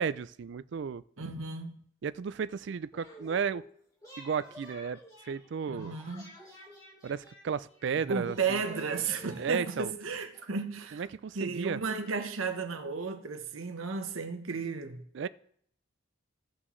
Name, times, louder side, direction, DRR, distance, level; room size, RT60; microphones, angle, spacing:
voice 1, 0.0-1.0 2.0-3.7 4.2-5.0 5.3-6.0 7.0-8.6 9.4-9.9 10.9-11.8 15.1-15.3, right 6 dB, 55° right, 0.3 m, -33 dB
voice 2, 1.2-1.8 5.7-6.3 8.1-11.1 11.3-15.1, right 5 dB, 80° right, 1.0 m, -34 dB
sound 1, 2.9-3.7 4.0-7.9 8.2-10.6, equal, 15° left, 2.6 m, -52 dB
16.0 x 6.1 x 3.2 m
head